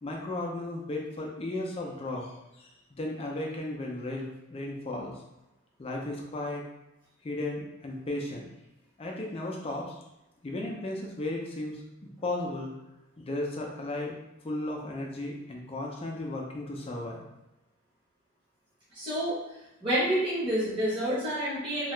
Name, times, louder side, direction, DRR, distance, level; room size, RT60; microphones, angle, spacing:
voice 1, 0.0-5.2 5.8-6.6 7.2-8.5 9.0-10.0 10.4-12.7 13.2-14.2 14.4-17.2, left 2 dB, 25° left, -1 dB, 0.4 m, -35 dB
voice 2, 18.9-19.4 19.8-21.9, equal, 25° right, -11 dB, 0.8 m, -28 dB
2.8 x 2.3 x 3.2 m, 0.94 s
head